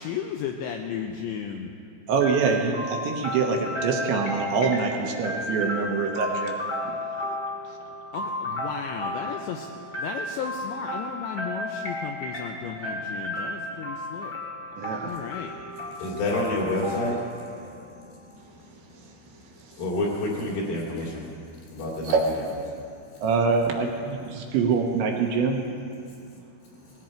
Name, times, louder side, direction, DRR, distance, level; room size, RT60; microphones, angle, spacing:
voice 1, 0.0-1.7 8.1-14.3 15.0-15.5, left 7 dB, 80° left, 3 dB, 2.7 m, -34 dB
voice 2, 2.1-6.6 14.8-15.1 22.0-22.2 23.2-25.6, right 5 dB, 75° right, 1 dB, 3.1 m, -25 dB
sound 1, 2.2-18.0, left 1 dB, 40° left, 1.3 m, -33 dB
voice 3, 15.1-19.1 19.7-21.3 21.7-22.2, left 1 dB, 60° left, -4 dB, 4.9 m, -30 dB
19.0 x 16.5 x 4.5 m, 2.5 s
omnidirectional pair, 5.8 m